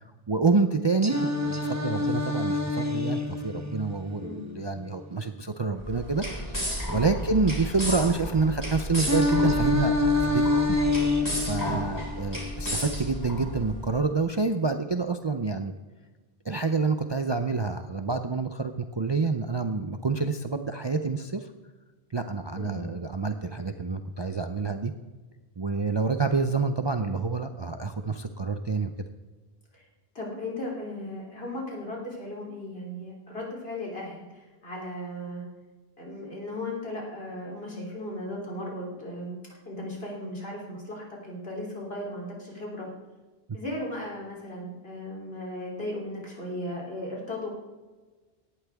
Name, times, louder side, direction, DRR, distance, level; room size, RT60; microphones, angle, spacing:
voice 1, 0.3-10.4 10.7-10.8 11.4-15.7 16.4-21.5 22.1-24.9 25.6-28.9, right 4 dB, 35° right, 7 dB, 0.5 m, -28 dB
Singing, 1.0-5.0 9.0-13.0, left 2 dB, 15° right, 1.1 m, -27 dB
sound 1, 5.8-13.9, equal, 20° left, 3.4 m, -33 dB
voice 2, 30.2-35.4 36.0-42.9 43.5-47.5, left 1 dB, 70° left, -3 dB, 3.6 m, -36 dB
17.5 x 11.5 x 3.5 m, 1.3 s
omnidirectional pair, 1.0 m